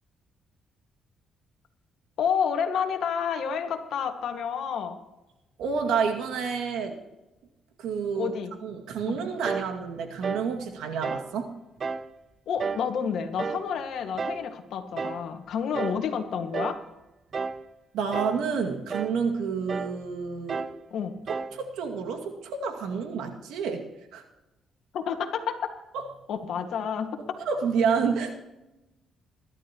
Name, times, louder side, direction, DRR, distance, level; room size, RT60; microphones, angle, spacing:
voice 1, 2.2-5.0 8.2-8.5 9.1-9.2 12.5-16.8 20.9-21.1 24.9-25.7 26.3-27.2, left 7 dB, 70° left, 6 dB, 1.8 m, -29 dB
voice 2, 5.6-6.9 7.8-8.3 8.6-11.5 17.9-20.7 21.5-23.8 24.1-24.2 25.9-26.0 27.2-28.4, right 6 dB, 85° right, 3 dB, 2.3 m, -29 dB
sound 1, 9.4-9.7 10.2-10.5 11.0-11.3 11.8-12.1 12.6-12.9 13.4-13.7 14.2-14.5 15.0-15.3 15.7-16.1 16.5-16.8 17.3-17.7 18.1-18.5 18.9-19.2 19.7-20.0 20.5-20.8 21.3-21.6, right 5 dB, 45° right, 0.7 m, -32 dB
22.0 x 12.0 x 3.1 m, 1.0 s
cardioid pair, 90°, 0 cm